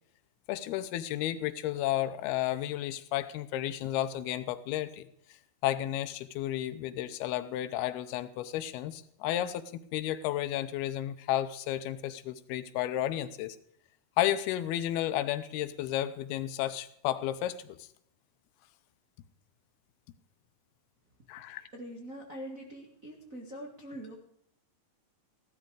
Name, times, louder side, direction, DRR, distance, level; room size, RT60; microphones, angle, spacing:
voice 1, 0.5-5.1 5.6-9.6 9.9-13.6 14.2-17.8 21.3-21.7, left 13 dB, 85° left, 12 dB, 2.7 m, -32 dB
voice 2, 21.7-24.2, equal, 40° right, -1 dB, 1.2 m, -43 dB
15.5 x 12.5 x 4.8 m, 0.70 s
omnidirectional pair, 4.5 m